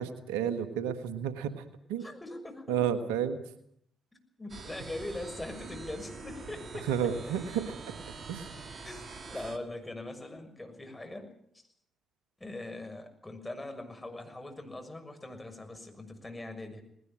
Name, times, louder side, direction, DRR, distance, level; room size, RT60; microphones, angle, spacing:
voice 1, 0.0-1.6 1.9-2.1 2.7-3.4 6.9-7.6 8.3-8.5, right 8 dB, 85° right, 10 dB, 1.5 m, -31 dB
voice 2, 2.0-2.8 4.4-7.1 8.8-11.3 12.4-16.8, left 2 dB, 20° left, 6 dB, 6.5 m, -41 dB
sound 1, 4.5-9.6, right 4 dB, 50° right, 2.4 m, -45 dB
20.0 x 18.0 x 8.9 m, 0.70 s
hypercardioid pair, 45°, 0 cm